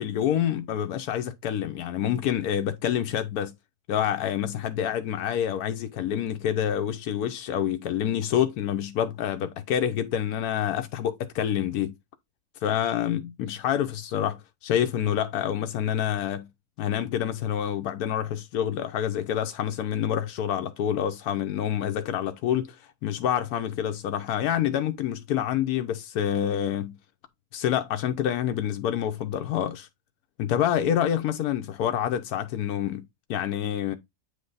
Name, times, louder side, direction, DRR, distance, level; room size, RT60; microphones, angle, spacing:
voice 1, 0.0-3.5 3.9-12.0 12.6-16.5 16.8-22.8 23.0-27.0 27.5-29.9 30.4-33.9, left 10 dB, 90° left, 1.2 m, -27 dB
8.6 x 3.3 x 3.9 m
omnidirectional pair, 1.5 m